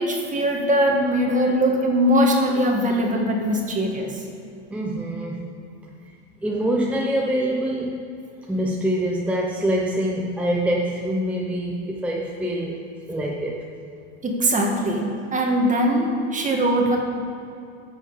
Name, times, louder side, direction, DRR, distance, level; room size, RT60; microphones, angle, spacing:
voice 1, 0.0-4.1 14.2-15.0 15.3-17.0, equal, 25° right, 1 dB, 1.7 m, -21 dB
voice 2, 4.7-5.5 6.4-8.1 8.5-13.7, right 1 dB, 5° right, -2 dB, 0.8 m, -25 dB
14.0 x 6.4 x 4.8 m, 2.6 s
supercardioid pair, 125°, 33 cm